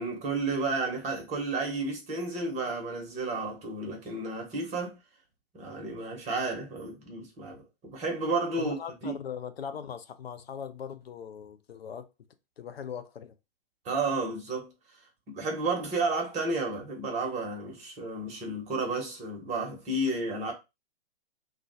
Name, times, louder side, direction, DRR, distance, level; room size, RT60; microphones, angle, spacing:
voice 1, 0.0-5.0 5.5-8.8 9.0-9.2 13.8-14.7 15.3-20.5, right 3 dB, 25° right, 1.0 m, -32 dB
voice 2, 8.6-12.1 12.6-13.4, left 7 dB, 85° left, 0.6 m, -40 dB
2.3 x 2.3 x 3.9 m
hypercardioid pair, 125°, 30 cm